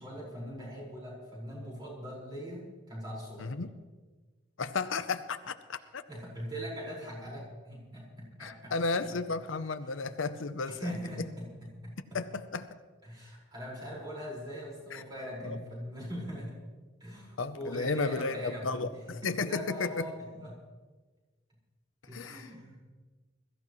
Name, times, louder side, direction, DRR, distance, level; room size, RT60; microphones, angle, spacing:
voice 1, 0.0-3.5 6.1-8.7 9.1-9.2 10.7-12.2 13.0-16.6 17.0-20.6 22.0-22.8, equal, 20° right, -5 dB, 5.0 m, -41 dB
voice 2, 3.4-3.7 4.6-6.0 8.4-10.9 12.1-12.7 14.9-15.0 15.4-15.6 17.4-20.1 22.1-22.5, left 4 dB, 85° left, 11 dB, 0.7 m, -33 dB
22.0 x 14.5 x 3.1 m, 1.3 s
head